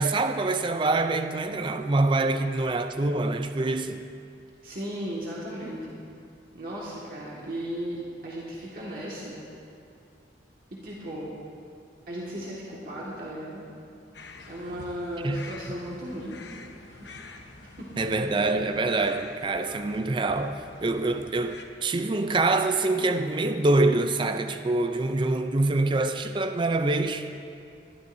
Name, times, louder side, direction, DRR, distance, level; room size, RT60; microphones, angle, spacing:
voice 1, 0.0-4.0 15.2-15.8 18.0-27.3, right 2 dB, 25° right, 0.4 m, -25 dB
voice 2, 4.6-6.0 6.5-9.4 10.8-11.3 12.1-13.7 14.5-16.4 16.9-17.3 17.6-17.9, equal, 55° right, 1.8 m, -36 dB
sound 1, 14.1-21.6, left 3 dB, 75° left, 1.0 m, -47 dB
sound 2, 22.9-24.8, equal, 5° left, 2.3 m, -49 dB
20.5 x 13.0 x 2.7 m
head